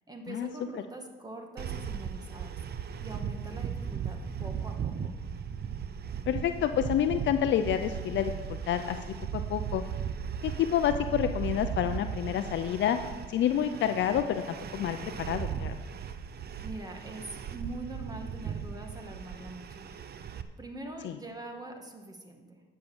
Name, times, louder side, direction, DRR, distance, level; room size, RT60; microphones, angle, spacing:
voice 1, 0.1-2.6 3.0-5.1 16.6-20.0 20.6-22.6, right 2 dB, 20° right, 3 dB, 1.9 m, -43 dB
sound 1, 1.6-20.4, right 7 dB, 55° right, 0.8 m, -37 dB
voice 2, 6.3-8.3 8.7-9.0 9.3-9.8 10.4-13.0 13.3-14.4 14.7-15.8 21.0-21.2, left 10 dB, 70° left, 8 dB, 0.6 m, -28 dB
10.5 x 6.7 x 7.2 m, 1.3 s
cardioid pair, 90°, 20 cm